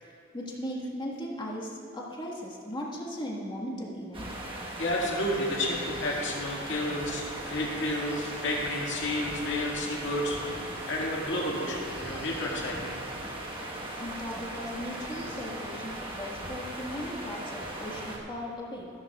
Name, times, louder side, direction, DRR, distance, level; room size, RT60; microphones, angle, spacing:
voice 1, 0.0-4.3 14.0-18.9, equal, 20° left, -3 dB, 1.6 m, -37 dB
sound 1, 4.1-18.2, right 1 dB, 25° right, 1.3 m, -38 dB
voice 2, 4.8-10.6 10.9-12.9, left 1 dB, 60° left, -3 dB, 2.1 m, -31 dB
15.0 x 13.0 x 2.4 m, 2.7 s
head